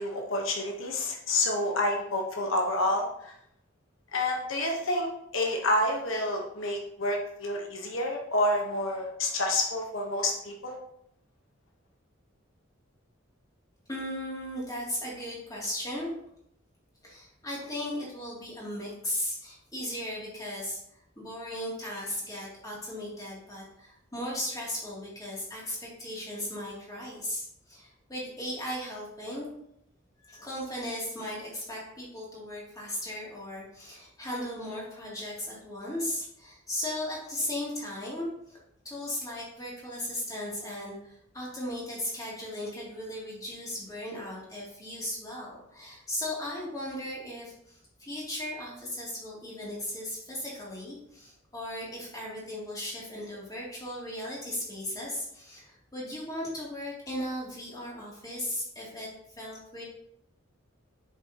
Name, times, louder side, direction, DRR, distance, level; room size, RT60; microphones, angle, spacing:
voice 1, 0.0-3.3 4.1-10.8, left 1 dB, 75° left, 1 dB, 1.2 m, -29 dB
voice 2, 13.9-16.1 17.0-20.8 21.2-29.5 30.2-38.6 38.8-59.1 59.4-59.8, left 1 dB, 15° left, -5 dB, 2.9 m, -37 dB
8.0 x 6.8 x 3.0 m, 0.74 s
head